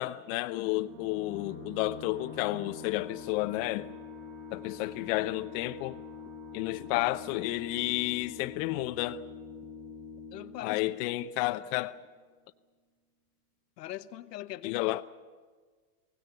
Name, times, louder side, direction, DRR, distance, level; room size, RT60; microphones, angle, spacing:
voice 1, 0.0-3.9 4.5-6.0 6.5-9.2 10.6-12.0 14.6-15.0, left 18 dB, 55° left, 0.9 m, -31 dB
sound 1, 0.7-11.9, left 4 dB, 85° right, 7.3 m, -45 dB
voice 2, 10.3-10.8 11.4-11.5 13.8-14.8, left 14 dB, 80° left, 1.2 m, -41 dB
23.0 x 18.0 x 9.4 m
hypercardioid pair, 110°, 47 cm